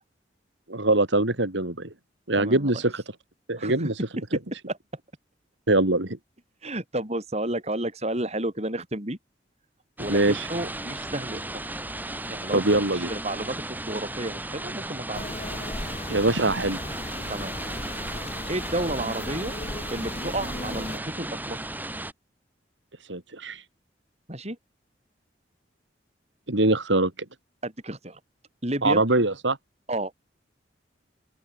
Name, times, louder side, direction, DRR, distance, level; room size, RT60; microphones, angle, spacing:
voice 1, 0.7-1.9 2.3-3.0 3.5-3.9 5.7-6.2 10.1-10.5 12.5-13.1 16.1-16.8 23.1-23.6 26.5-27.1 28.8-29.6, right 2 dB, 85° right, 3.3 m, -23 dB
voice 2, 2.4-2.7 3.6-3.9 4.7-4.8 6.6-9.2 10.0-11.4 12.3-15.5 17.3-17.5 18.5-19.5 19.9-21.6 24.3-24.6 27.6-28.2 28.6-29.0 29.9-30.1, right 1 dB, 35° right, 7.3 m, -31 dB
sound 1, 10.0-22.1, right 1 dB, 10° right, 3.9 m, -35 dB
sound 2, 15.1-21.0, left 1 dB, 35° left, 2.6 m, -36 dB
open air
head